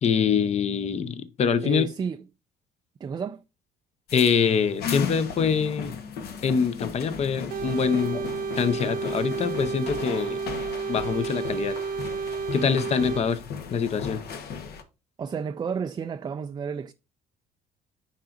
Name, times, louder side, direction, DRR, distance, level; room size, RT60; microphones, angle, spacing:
voice 1, 0.0-1.9 4.1-6.0 6.4-8.2 8.6-10.4 10.9-11.8 12.5-13.4 13.7-14.2, left 6 dB, 40° left, 0.7 m, -24 dB
voice 2, 1.6-2.2 3.0-3.4 12.5-12.9 15.2-16.9, right 6 dB, 25° right, 0.3 m, -32 dB
sound 1, 4.1-14.8, left 6 dB, 65° left, 1.1 m, -36 dB
sound 2, 5.5-11.7, left 6 dB, 15° left, 1.4 m, -45 dB
sound 3, 7.5-13.2, right 5 dB, 60° right, 0.8 m, -31 dB
10.0 x 3.9 x 2.6 m
cardioid pair, 110°, 17 cm